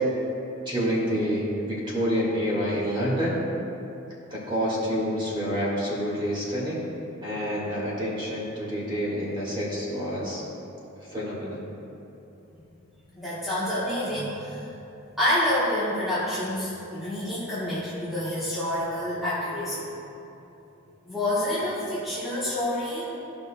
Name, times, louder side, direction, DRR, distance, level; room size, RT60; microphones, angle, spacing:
voice 1, 0.6-3.4 4.3-6.8 7.2-10.4 11.0-11.6, equal, 20° right, -6 dB, 1.7 m, -28 dB
voice 2, 13.1-14.7 15.2-19.9 21.0-23.0, left 1 dB, ahead, -12 dB, 1.1 m, -28 dB
15.0 x 5.2 x 2.3 m, 2.9 s
head